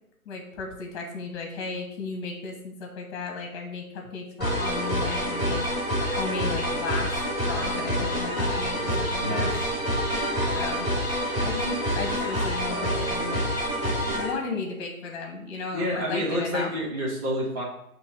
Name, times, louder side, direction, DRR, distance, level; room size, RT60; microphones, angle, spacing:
voice 1, 0.3-5.7 6.2-7.1 7.4-9.6 10.5-10.9 11.4-13.4 14.2-16.7, left 4 dB, 20° left, 2 dB, 1.0 m, -34 dB
sound 1, 4.4-14.3, equal, 10° right, 1.9 m, -27 dB
voice 2, 9.2-9.7 15.7-17.6, equal, 25° right, -5 dB, 1.7 m, -29 dB
8.5 x 3.1 x 5.1 m, 0.80 s
figure-of-eight pair, 135°, 43 cm